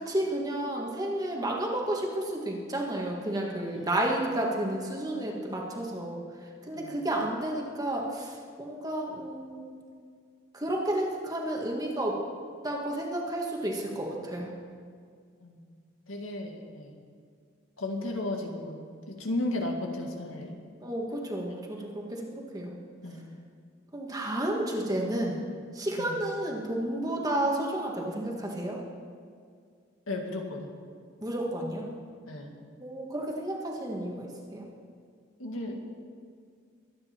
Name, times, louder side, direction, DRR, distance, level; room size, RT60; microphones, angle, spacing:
voice 1, 0.0-6.2 6.7-9.8 10.5-12.2 12.6-14.5 20.8-22.8 23.9-25.4 25.7-28.8 31.2-31.9 32.8-34.7, right 1 dB, 20° right, -1 dB, 1.8 m, -31 dB
voice 2, 3.6-3.9 6.7-7.0 15.4-15.6 16.1-17.0 17.8-20.5 23.0-23.2 26.0-26.2 30.1-30.7 32.3-32.5 35.4-35.8, left 2 dB, 80° left, 2 dB, 2.0 m, -34 dB
23.0 x 9.5 x 4.5 m, 2.1 s
head